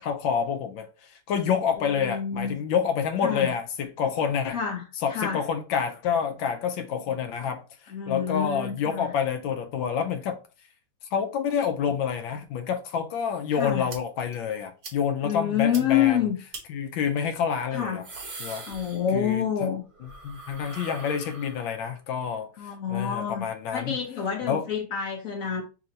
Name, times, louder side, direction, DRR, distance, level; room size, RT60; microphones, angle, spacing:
voice 1, 0.0-4.6 5.0-7.6 8.1-10.4 11.1-16.2 16.7-18.0 18.4-18.6 19.1-19.7 20.2-24.0 24.5-24.6, left 7 dB, 75° left, 1.2 m, -28 dB
voice 2, 1.8-2.6 3.2-3.5 4.5-4.8 5.1-5.4 7.9-9.2 13.5-13.9 15.2-16.4 17.7-18.0 18.6-19.8 22.6-23.5 23.7-25.6, left 8 dB, 55° left, 1.0 m, -27 dB
sound 1, 13.9-14.0 14.3-14.4 14.8-15.0 15.3-15.4 15.7-15.8 16.5-16.6 17.7-19.4 19.7-21.9, right 3 dB, 40° right, 0.9 m, -41 dB
3.4 x 2.9 x 3.8 m
omnidirectional pair, 2.3 m